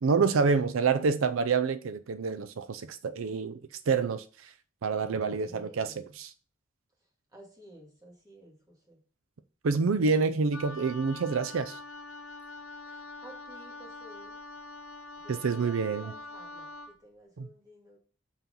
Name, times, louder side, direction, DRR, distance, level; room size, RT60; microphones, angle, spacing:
voice 1, 0.0-3.6 3.9-4.5 4.8-6.3 9.6-11.8 15.3-16.1 17.4-17.5, right 5 dB, 85° right, 0.5 m, -27 dB
voice 2, 5.1-6.2 7.3-9.0 12.8-14.4 15.2-18.0, equal, 20° right, 2.0 m, -53 dB
Wind instrument woodwind instrument, 10.5-17.0, left 2 dB, 90° left, 0.9 m, -44 dB
5.8 x 4.4 x 5.4 m
head